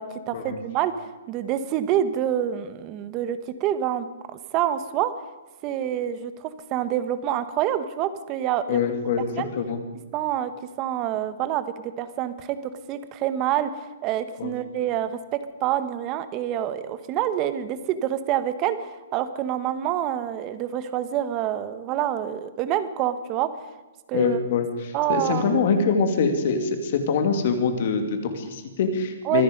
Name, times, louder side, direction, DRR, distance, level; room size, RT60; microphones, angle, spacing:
voice 1, 0.0-4.1 4.5-5.1 5.6-8.8 9.4-9.5 10.1-10.5 10.8-11.6 12.0-12.6 12.9-23.5 24.1-24.4 24.9-25.5 29.2-29.4, right 11 dB, 25° right, 12 dB, 1.0 m, -27 dB
voice 2, 8.7-9.3 9.6-9.8 14.4-14.5 24.1-29.4, left 5 dB, 45° left, 7 dB, 2.4 m, -24 dB
24.5 x 10.0 x 5.2 m, 1.2 s
hypercardioid pair, 170°, 0 cm